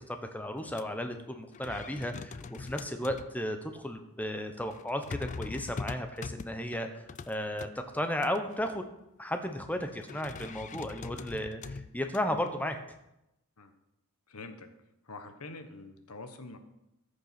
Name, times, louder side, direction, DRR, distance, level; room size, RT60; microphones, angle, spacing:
voice 1, 0.0-8.9 9.2-12.8, left 1 dB, 5° left, 6 dB, 1.0 m, -34 dB
sound 1, 0.6-0.8 1.2-1.3 1.5-3.4 3.8-3.9 4.7-7.7 8.2-8.7 10.0-12.5, left 4 dB, 35° left, 0.3 m, -42 dB
voice 2, 14.3-14.7 15.0-16.6, left 3 dB, 85° left, 8 dB, 1.3 m, -45 dB
14.0 x 6.7 x 6.0 m, 0.89 s
head